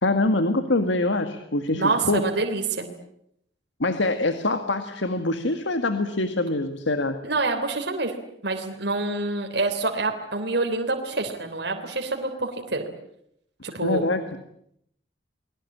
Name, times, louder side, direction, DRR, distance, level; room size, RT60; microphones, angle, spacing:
voice 1, 0.0-2.3 3.8-7.2 13.8-14.2, left 2 dB, 80° left, 8 dB, 1.9 m, -24 dB
voice 2, 1.7-2.9 7.2-8.1 8.4-12.8 13.6-14.0, right 3 dB, 65° right, 3 dB, 3.4 m, -26 dB
30.0 x 22.0 x 8.6 m, 0.74 s
head